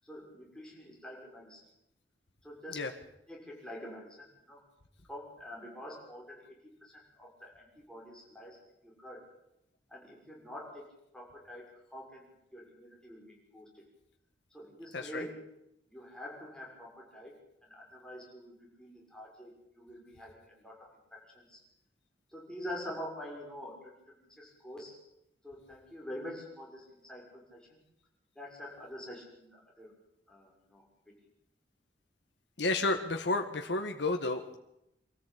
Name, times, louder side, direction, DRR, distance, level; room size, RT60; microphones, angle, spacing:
voice 1, 0.0-1.6 2.4-2.9 3.3-4.6 5.1-9.2 9.9-10.8 11.1-13.8 14.5-15.5 15.9-17.3 17.6-21.6 22.3-25.0 25.4-27.8 28.3-29.9 30.3-30.8, equal, 5° left, -3 dB, 6.4 m, -46 dB
voice 2, 14.9-15.3 32.6-34.6, left 2 dB, 80° left, 4 dB, 1.8 m, -31 dB
25.0 x 14.0 x 8.7 m, 0.83 s
head